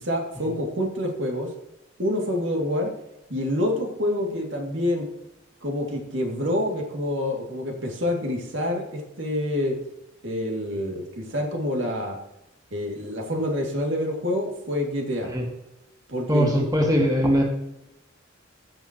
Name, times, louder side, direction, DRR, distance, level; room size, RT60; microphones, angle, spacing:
voice 1, 0.0-1.5 2.0-2.9 3.3-5.1 5.6-9.8 10.2-12.2 12.7-15.3 16.1-16.7, left 1 dB, 85° right, 1 dB, 2.5 m, -27 dB
voice 2, 16.3-17.4, equal, 20° right, 0 dB, 2.0 m, -21 dB
15.5 x 7.4 x 3.0 m, 0.87 s
head